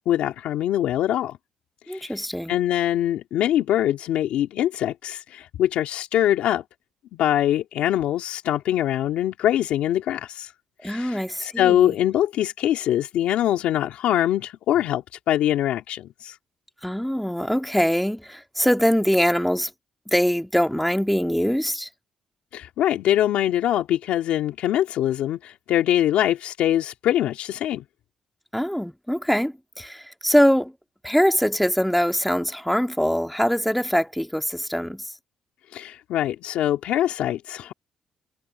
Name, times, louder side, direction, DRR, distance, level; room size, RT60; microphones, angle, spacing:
voice 1, 0.0-1.4 1.9-2.2 2.5-6.6 7.1-10.5 10.8-16.4 22.5-27.8 35.7-37.7, left 12 dB, 85° left, 2.4 m, -23 dB
voice 2, 1.9-2.5 10.8-12.0 16.8-19.7 20.1-21.9 28.5-30.7 31.0-35.1, equal, ahead, 1.9 m, -23 dB
cardioid pair, 140°, 2 cm